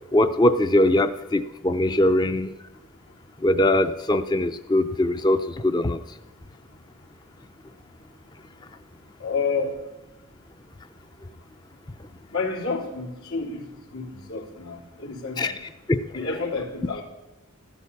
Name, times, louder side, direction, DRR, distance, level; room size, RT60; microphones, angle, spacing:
voice 1, 0.1-2.5 3.4-6.0 15.4-15.5 15.9-16.0, left 1 dB, 20° left, 10 dB, 0.4 m, -21 dB
voice 2, 9.2-9.8 12.3-15.6 16.1-17.0, left 4 dB, 90° left, -2 dB, 3.6 m, -30 dB
14.5 x 13.0 x 7.0 m, 1.0 s
head